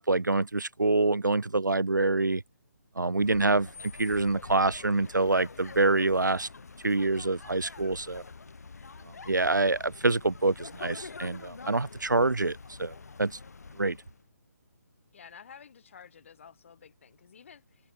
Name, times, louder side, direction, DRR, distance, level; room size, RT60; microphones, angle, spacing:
voice 1, 0.0-2.4 3.0-3.7 4.0-6.5 6.8-8.2 9.3-13.4 13.8-14.0, right 3 dB, 90° right, 0.5 m, -26 dB
sound 1, 3.1-14.2, left 4 dB, 60° left, 6.8 m, -46 dB
voice 2, 15.1-17.9, left 7 dB, 45° left, 7.0 m, -52 dB
open air
figure-of-eight pair, 145°, 10 cm